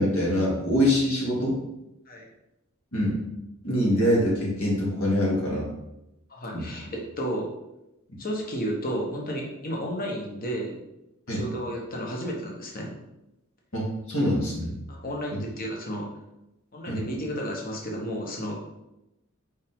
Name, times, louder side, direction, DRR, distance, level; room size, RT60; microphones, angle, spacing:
voice 1, 0.0-1.6 2.9-3.2 3.6-5.7 6.5-6.7 11.3-11.4 13.7-14.7 15.3-15.4 16.9-17.0, equal, 75° left, -4 dB, 2.3 m, -24 dB
voice 2, 6.3-6.9 7.2-7.5 8.2-10.7 11.3-12.9 14.9-16.1 16.7-18.7, equal, 40° left, -1 dB, 1.2 m, -32 dB
5.3 x 4.9 x 3.7 m, 0.89 s
head